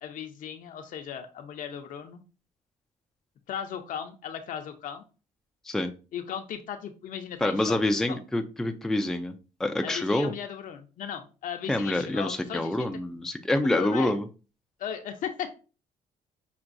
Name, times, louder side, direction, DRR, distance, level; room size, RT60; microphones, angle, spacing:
voice 1, 0.0-2.2 3.5-5.0 6.1-7.8 8.1-8.2 9.8-12.9 13.6-14.1 14.8-15.6, left 8 dB, 60° left, 6 dB, 0.7 m, -37 dB
voice 2, 7.4-9.3 9.6-10.3 11.7-14.2, left 1 dB, 5° left, 6 dB, 0.4 m, -27 dB
5.9 x 2.2 x 2.6 m, 0.33 s
cardioid pair, 115°, 15 cm